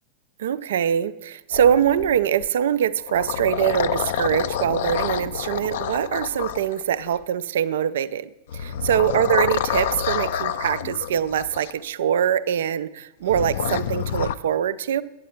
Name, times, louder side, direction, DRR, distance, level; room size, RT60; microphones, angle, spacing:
voice 1, 0.4-15.0, right 9 dB, 60° right, 16 dB, 0.4 m, -23 dB
sound 1, 1.5-2.5 3.0-7.2 8.5-11.7 13.3-14.3, left 9 dB, 55° left, 0.4 m, -28 dB
9.0 x 8.3 x 4.3 m, 1.0 s
figure-of-eight pair, 90°, 0 cm